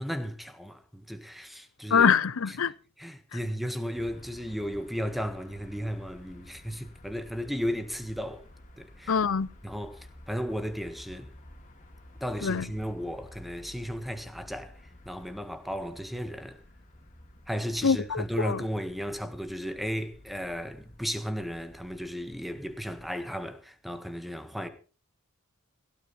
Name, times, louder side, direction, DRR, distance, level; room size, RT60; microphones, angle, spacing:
voice 1, 0.0-2.1 3.0-8.4 8.8-9.1 9.6-11.3 12.2-14.8 15.0-16.6 17.5-24.7, equal, ahead, 1.5 m, -34 dB
voice 2, 1.9-2.7 3.3-3.4 9.1-9.5 12.4-12.7 17.8-18.6, left 6 dB, 70° left, 0.6 m, -24 dB
sound 1, 3.9-23.1, left 1 dB, 40° left, 3.3 m, -52 dB
16.5 x 13.0 x 4.3 m
head